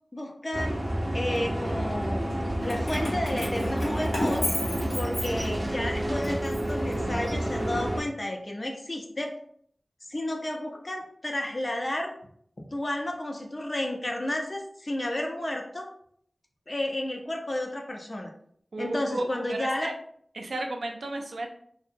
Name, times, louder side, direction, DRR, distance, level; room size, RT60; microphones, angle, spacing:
voice 1, 0.1-0.8 1.1-2.2 2.6-4.5 4.9-9.3 10.1-12.1 12.6-15.9 16.7-18.3 18.8-19.9, left 1 dB, 45° left, 2 dB, 0.5 m, -32 dB
sound 1, 0.5-8.0, right 1 dB, 15° right, 0.4 m, -29 dB
Keys jangling, 2.6-5.8 6.2-7.5, left 1 dB, 90° left, 0.7 m, -34 dB
voice 2, 18.7-19.9 20.4-21.5, right 2 dB, 85° right, 3 dB, 0.3 m, -33 dB
2.6 x 2.0 x 2.5 m, 0.64 s
cardioid pair, 40°, 0 cm